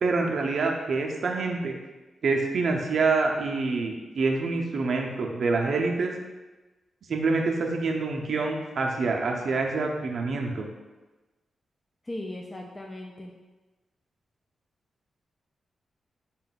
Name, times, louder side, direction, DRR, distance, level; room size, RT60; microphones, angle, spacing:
voice 1, 0.0-1.8 2.2-6.1 7.1-10.7, right 3 dB, 65° right, 2 dB, 0.4 m, -26 dB
voice 2, 12.0-13.3, left 1 dB, 20° left, 0 dB, 0.3 m, -37 dB
3.8 x 2.2 x 4.0 m, 1.2 s
wide cardioid pair, 105°, 0 cm